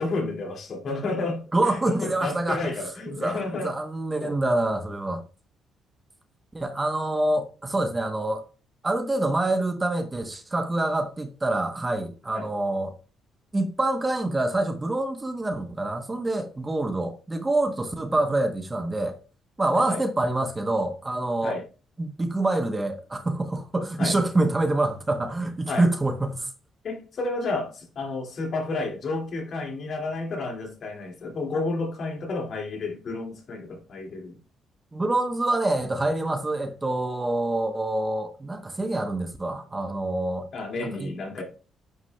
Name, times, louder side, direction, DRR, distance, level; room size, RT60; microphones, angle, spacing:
voice 1, 0.0-3.7 4.2-4.4 12.3-12.5 19.9-20.0 21.4-21.6 24.0-24.2 25.7-25.9 26.8-34.4 40.5-41.4, left 3 dB, 55° left, 2.3 m, -31 dB
voice 2, 1.5-2.7 3.1-5.2 6.5-8.4 8.8-12.9 13.5-19.2 19.6-21.5 22.0-26.5 34.9-40.5 40.8-41.1, right 2 dB, 20° right, 1.0 m, -26 dB
9.6 x 5.9 x 2.3 m
cardioid pair, 90°, 0 cm